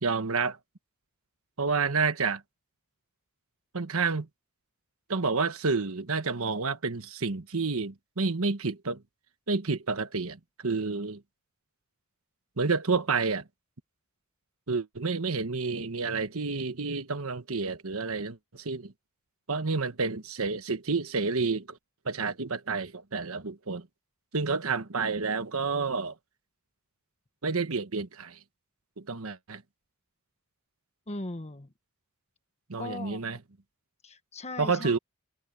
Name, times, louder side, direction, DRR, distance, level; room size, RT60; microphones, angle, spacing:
voice 1, 0.0-0.6 1.6-2.4 3.7-4.3 5.1-9.0 9.5-11.2 12.6-13.5 14.7-18.9 19.5-21.8 22.0-23.9 24.3-26.1 27.4-28.4 29.0-29.6 32.7-33.4 34.6-35.0, right 4 dB, 70° right, 1.3 m, -29 dB
voice 2, 31.1-31.7 32.8-33.4 34.0-35.0, left 2 dB, 30° left, 1.4 m, -39 dB
head